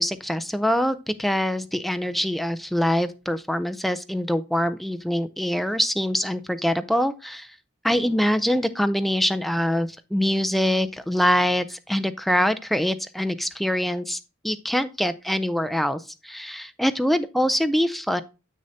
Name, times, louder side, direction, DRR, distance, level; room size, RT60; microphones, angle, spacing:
voice 1, 0.0-7.5 7.8-14.2 14.4-18.2, equal, ahead, 0.4 m, -24 dB
7.9 x 6.4 x 2.7 m
head